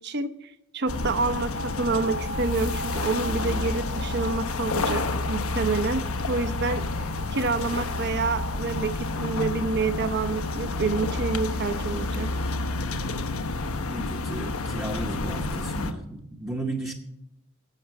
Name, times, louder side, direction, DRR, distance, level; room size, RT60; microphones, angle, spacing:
voice 1, 0.0-6.8 7.3-12.3, right 3 dB, 50° right, 11 dB, 0.8 m, -28 dB
sound 1, 0.9-15.9, left 2 dB, 85° left, 0.9 m, -29 dB
sound 2, 2.4-11.3, left 2 dB, 45° left, 0.6 m, -46 dB
voice 2, 13.9-16.9, right 2 dB, 10° right, -1 dB, 0.8 m, -34 dB
11.0 x 7.2 x 7.0 m, 0.80 s
head